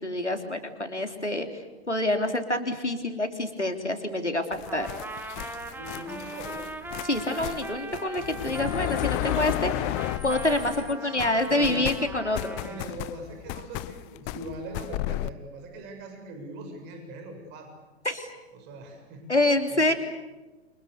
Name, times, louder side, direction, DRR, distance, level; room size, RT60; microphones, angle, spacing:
voice 1, 0.0-4.9 7.0-12.6 18.1-18.3 19.3-19.9, left 1 dB, 90° left, 6 dB, 3.6 m, -27 dB
sound 1, 4.5-10.9 11.2-15.3, left 17 dB, 25° left, 0.8 m, -33 dB
Trumpet, 4.7-12.9, right 2 dB, 5° right, 2.0 m, -40 dB
voice 2, 5.7-6.7 7.2-7.5 10.6-11.9 12.6-17.7 18.5-19.2 19.7-20.0, right 1 dB, 30° right, 4 dB, 7.4 m, -41 dB
29.5 x 26.5 x 6.9 m, 1.2 s
figure-of-eight pair, 110°, 34 cm